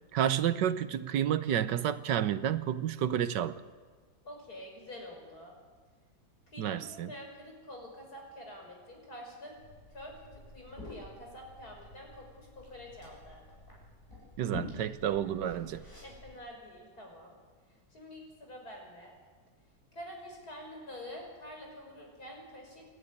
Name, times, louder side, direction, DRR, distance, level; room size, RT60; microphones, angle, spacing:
voice 1, 0.1-3.6 6.6-7.1 14.4-15.8, right 10 dB, 85° right, 1.5 m, -30 dB
voice 2, 4.2-5.5 6.5-9.5 9.9-13.4 15.2-15.3 16.0-17.4 17.9-19.2 19.9-23.0, left 1 dB, 60° left, 6.2 m, -47 dB
Liquid, 9.6-16.3, left 1 dB, 30° left, 7.9 m, -48 dB
28.5 x 12.0 x 9.8 m
omnidirectional pair, 1.9 m